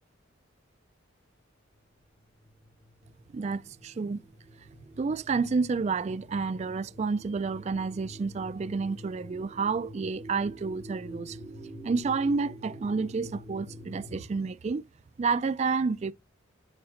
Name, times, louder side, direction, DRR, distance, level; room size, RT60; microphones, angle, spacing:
sound 1, 2.3-14.3, equal, 30° left, 3.6 m, -46 dB
voice 1, 3.3-4.2 5.0-11.4 11.8-14.9 15.2-16.1, right 4 dB, 35° right, 0.3 m, -30 dB
9.5 x 5.1 x 2.5 m
head